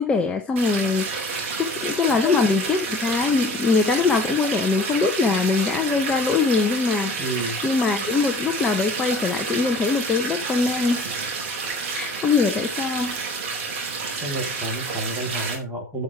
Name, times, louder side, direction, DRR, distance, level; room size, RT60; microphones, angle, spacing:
voice 1, 0.0-11.3 11.9-13.2, left 4 dB, 10° left, 5 dB, 0.9 m, -23 dB
sound 1, 0.6-15.5, right 4 dB, 45° right, 4.5 m, -29 dB
voice 2, 7.2-7.6 14.2-16.0, right 1 dB, 10° right, -1 dB, 3.7 m, -30 dB
11.0 x 6.4 x 4.8 m, 0.32 s
hypercardioid pair, 135°, 9 cm